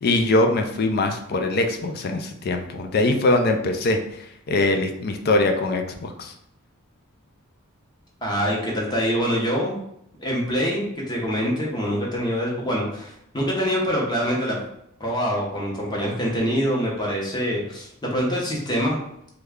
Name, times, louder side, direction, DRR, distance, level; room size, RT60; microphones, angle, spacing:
voice 1, 0.0-4.0 4.5-6.3, left 2 dB, 45° left, 5 dB, 0.4 m, -22 dB
voice 2, 8.2-9.8 10.2-14.6 15.0-19.0, equal, 20° left, -2 dB, 0.8 m, -25 dB
3.1 x 2.3 x 3.5 m, 0.75 s
head